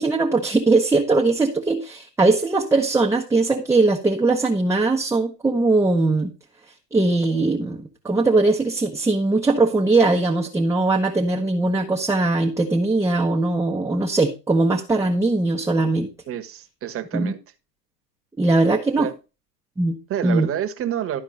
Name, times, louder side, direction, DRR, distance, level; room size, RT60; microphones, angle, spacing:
voice 1, 0.0-6.3 6.9-16.1 17.1-17.3 18.4-19.1 19.8-20.0 20.2-20.5, right 3 dB, 5° right, 0 dB, 1.0 m, -20 dB
voice 2, 16.3-17.4 19.0-19.1 20.1-21.2, right 10 dB, 30° right, 8 dB, 1.4 m, -28 dB
12.5 x 4.5 x 5.4 m, 0.30 s
hypercardioid pair, 105°, 48 cm